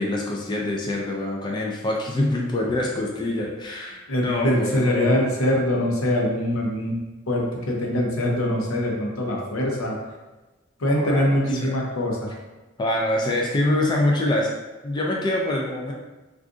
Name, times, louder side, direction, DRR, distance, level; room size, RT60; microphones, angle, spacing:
voice 1, 0.0-4.0 4.2-5.2 10.9-11.8 12.8-14.5 14.8-15.9, left 1 dB, 20° left, -1 dB, 0.3 m, -25 dB
voice 2, 4.1-7.0 7.3-10.0 10.8-12.3, left 1 dB, 85° left, -1 dB, 0.7 m, -23 dB
2.5 x 2.3 x 3.6 m, 1.1 s
head